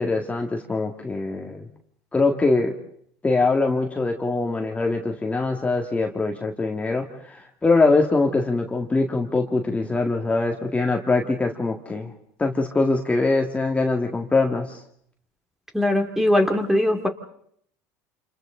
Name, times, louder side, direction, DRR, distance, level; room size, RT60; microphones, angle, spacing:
voice 1, 0.0-1.7 2.1-2.7 3.2-12.1 12.4-14.8, left 3 dB, 15° left, 2 dB, 2.0 m, -23 dB
voice 2, 15.7-17.1, left 1 dB, 5° right, 5 dB, 2.5 m, -20 dB
29.0 x 28.0 x 3.9 m, 0.66 s
supercardioid pair, 95°, 8 cm